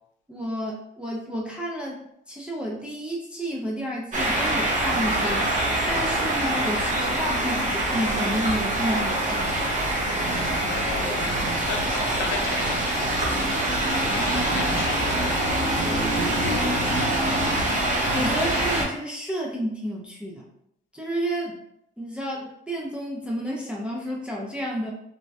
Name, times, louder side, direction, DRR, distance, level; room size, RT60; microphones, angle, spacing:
voice 1, 0.3-2.0 2.3-9.5 18.1-20.5 20.9-21.6 22.0-24.9, equal, 5° right, -3 dB, 0.6 m, -31 dB
sound 1, 4.1-18.8, right 1 dB, 40° right, 0.8 m, -24 dB
voice 2, 10.3-13.1 13.6-17.0, left 5 dB, 85° left, 4 dB, 0.5 m, -36 dB
3.1 x 2.2 x 2.7 m, 0.76 s
cardioid pair, 90°, 20 cm